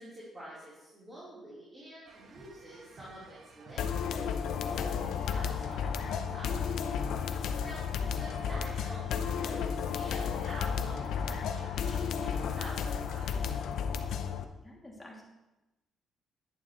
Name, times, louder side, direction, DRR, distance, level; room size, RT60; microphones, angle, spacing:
voice 1, 0.0-3.9 4.1-6.6 7.3-7.8 8.2-13.6, right 1 dB, 25° right, -9 dB, 4.2 m, -48 dB
sound 1, 2.1-12.8, right 4 dB, 55° right, 1.3 m, -53 dB
sound 2, 3.8-14.4, left 7 dB, 80° left, 0.7 m, -33 dB
voice 2, 14.6-15.2, left 1 dB, 15° left, -3 dB, 2.9 m, -51 dB
11.0 x 11.0 x 3.3 m, 1.0 s
cardioid pair, 90°, 0 cm